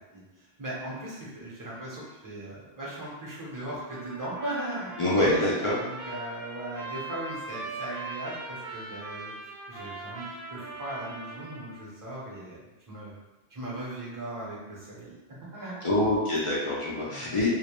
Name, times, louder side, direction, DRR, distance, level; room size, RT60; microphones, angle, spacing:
voice 1, 0.1-5.0 5.4-5.5 5.8-9.3 9.7-13.2 13.5-15.9 17.0-17.4, right 1 dB, 25° right, -7 dB, 0.6 m, -38 dB
Trumpet, 3.8-11.9, right 3 dB, 60° right, 0.8 m, -40 dB
voice 2, 5.0-5.8 15.8-17.5, left 1 dB, 60° left, -7 dB, 0.3 m, -25 dB
2.2 x 2.0 x 2.9 m, 1.1 s
omnidirectional pair, 1.1 m